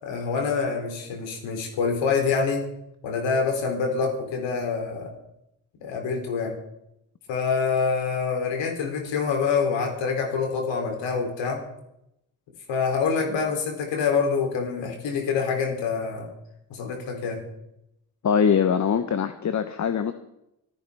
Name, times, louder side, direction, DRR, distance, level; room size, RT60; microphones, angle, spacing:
voice 1, 0.0-2.6 3.0-5.1 5.8-6.5 7.3-11.6 12.7-16.3 16.7-17.4, left 5 dB, 80° left, 2 dB, 3.2 m, -26 dB
voice 2, 18.2-20.1, left 7 dB, 40° left, 9 dB, 0.9 m, -22 dB
25.0 x 10.0 x 3.5 m, 0.85 s
supercardioid pair, 60°, 44 cm